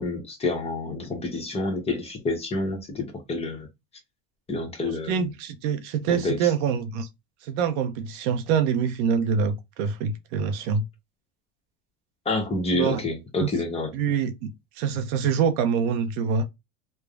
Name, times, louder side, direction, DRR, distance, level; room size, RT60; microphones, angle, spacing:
voice 1, 0.0-3.7 4.5-5.2 6.1-6.5 12.2-13.9, left 2 dB, 15° left, 0.8 m, -28 dB
voice 2, 4.8-7.1 7.4-10.8 12.7-13.0 13.4-13.5 13.9-16.4, right 6 dB, 60° right, 0.6 m, -25 dB
3.2 x 2.0 x 2.3 m
supercardioid pair, 130°, 35 cm